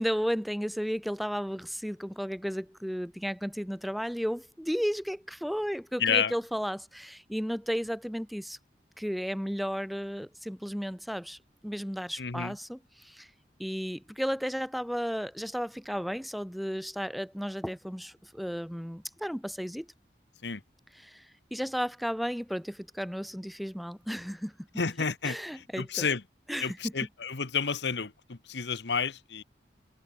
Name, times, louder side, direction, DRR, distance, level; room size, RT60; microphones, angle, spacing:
voice 1, 0.0-8.6 9.0-13.3 13.6-19.9 20.9-24.5 25.2-26.1 26.5-26.9, equal, ahead, 0.8 m, -34 dB
voice 2, 6.0-6.3 12.2-12.5 20.4-20.6 24.8-25.4 25.8-26.2 26.6-29.4, left 6 dB, 75° left, 1.2 m, -30 dB
head